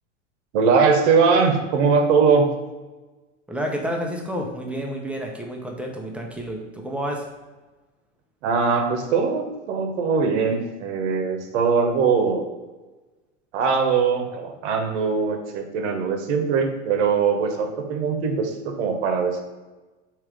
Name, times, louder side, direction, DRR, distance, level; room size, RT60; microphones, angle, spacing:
voice 1, 0.5-2.5 8.4-12.4 13.5-19.4, right 5 dB, 65° right, 4 dB, 0.9 m, -21 dB
voice 2, 3.5-7.3, equal, 5° right, 0 dB, 0.6 m, -30 dB
3.5 x 3.1 x 4.6 m, 1.2 s
hypercardioid pair, 100°, 37 cm